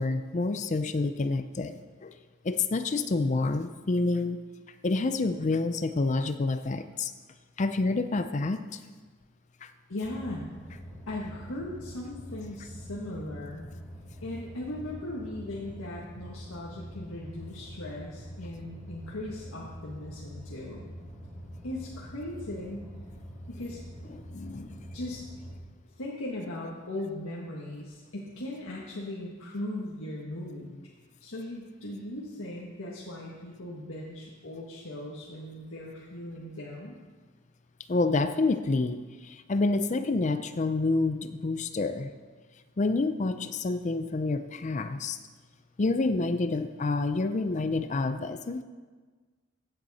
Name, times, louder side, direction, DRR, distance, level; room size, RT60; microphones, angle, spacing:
voice 1, 0.0-2.1 2.4-4.4 4.8-7.1 7.6-8.8 9.6-9.7 24.1-24.7 37.9-42.1 42.8-45.2 45.8-48.6, left 3 dB, 35° left, 10 dB, 0.4 m, -28 dB
voice 2, 9.9-10.4 11.1-13.7 14.2-20.9 21.6-22.9 23.5-23.8 24.9-25.2 26.0-30.7 31.2-37.0, left 1 dB, 85° left, -4 dB, 1.6 m, -38 dB
sound 1, 10.0-25.6, equal, ahead, 3.5 m, -45 dB
15.5 x 9.1 x 4.2 m, 1.4 s
head